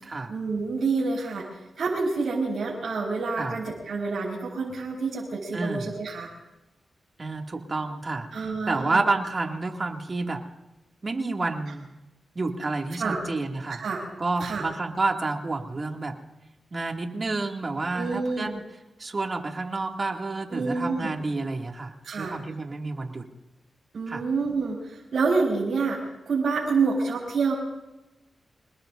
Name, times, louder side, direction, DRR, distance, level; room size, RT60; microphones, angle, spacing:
voice 1, 0.3-1.5 1.8-6.3 8.3-9.0 13.0-13.2 13.8-14.0 14.4-14.6 17.9-18.5 20.5-21.1 22.0-22.4 23.9-27.5, right 4 dB, 70° right, -5 dB, 5.0 m, -27 dB
voice 2, 5.5-5.9 7.2-10.4 11.0-11.8 12.3-13.8 14.2-16.2 16.7-18.6 19.0-23.3 24.1-24.2, right 3 dB, 40° right, 2 dB, 2.4 m, -29 dB
26.5 x 20.5 x 2.7 m, 0.98 s
cardioid pair, 65°, 0 cm